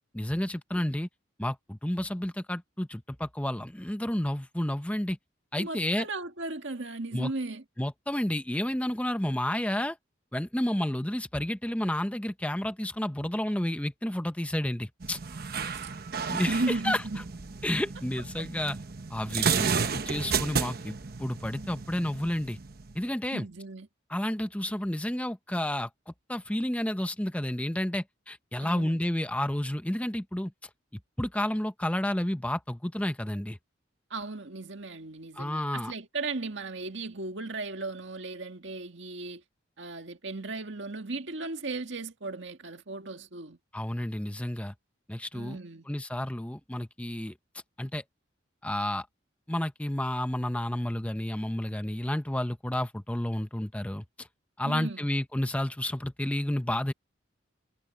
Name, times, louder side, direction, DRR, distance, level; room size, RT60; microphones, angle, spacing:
voice 1, 0.1-1.1 1.4-5.2 5.5-6.1 7.1-7.3 7.8-10.0 10.3-15.2 16.3-17.0 17.6-18.8 19.1-22.6 22.9-23.5 24.1-30.7 31.2-33.6 35.3-35.9 43.7-44.7 45.1-45.6 45.9-47.3 47.8-48.0 48.6-49.1 49.5-54.3 54.6-56.9, left 1 dB, 5° left, 0.7 m, -31 dB
voice 2, 5.6-7.6 15.7-15.9 16.5-17.2 19.4-19.8 23.3-23.9 28.6-29.0 34.1-39.4 39.8-43.6 45.3-45.9 54.6-55.0, right 3 dB, 70° right, 1.9 m, -36 dB
sound 1, 15.0-23.0, right 5 dB, 50° right, 1.0 m, -32 dB
head